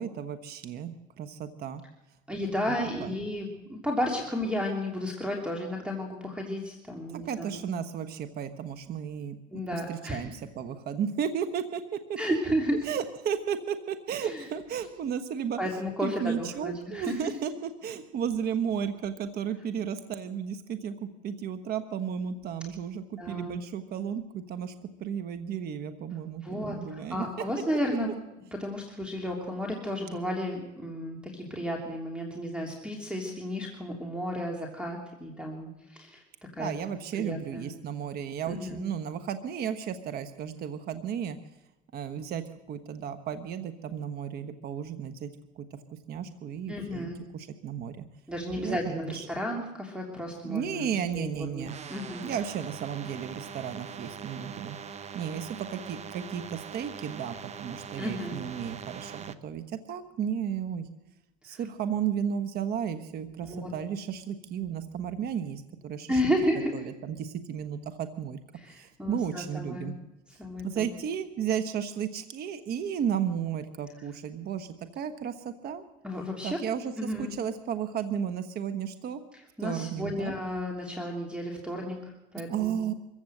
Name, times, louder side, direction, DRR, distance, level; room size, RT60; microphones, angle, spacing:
voice 1, 0.0-1.8 2.7-2.8 3.0-3.1 7.1-12.2 12.8-15.6 16.0-27.3 36.6-41.4 41.9-45.3 45.6-48.1 48.6-49.3 50.4-51.9 52.2-54.8 55.1-60.9 61.4-66.2 66.7-68.4 68.7-69.9 70.3-75.8 76.4-79.2 79.6-80.3 82.5-82.9, right 8 dB, 50° right, 9 dB, 1.2 m, -34 dB
voice 2, 2.3-7.6 9.5-10.2 12.2-12.9 14.2-14.5 15.6-17.2 23.2-23.5 26.4-28.1 28.6-36.2 36.5-36.7 37.2-37.7 38.5-38.8 46.7-47.2 48.3-51.3 51.5-52.2 58.0-58.3 61.5-61.6 63.4-63.7 66.1-66.7 68.5-69.9 70.4-70.9 76.0-76.6 77.0-77.3 79.3-82.8, equal, 5° right, 0 dB, 2.9 m, -33 dB
sound 1, 51.7-59.3, right 7 dB, 30° right, 1.0 m, -42 dB
24.0 x 15.0 x 7.9 m, 0.99 s
cardioid pair, 125°, 21 cm